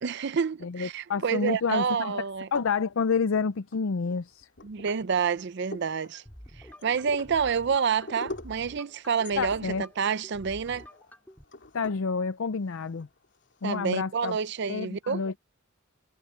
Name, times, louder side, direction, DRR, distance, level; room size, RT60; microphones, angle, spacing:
voice 1, 0.0-2.5 4.6-6.2 6.8-10.8 13.6-15.2, right 6 dB, 60° right, 0.5 m, -28 dB
voice 2, 0.6-2.2 2.5-4.5 9.4-9.9 11.7-13.1 13.6-14.4 14.7-15.4, left 5 dB, 80° left, 0.5 m, -29 dB
sound 1, 1.4-1.9 2.3-3.3 3.7-13.6, left 2 dB, 60° left, 2.8 m, -46 dB
sound 2, 6.3-11.4, equal, 10° left, 4.3 m, -49 dB
head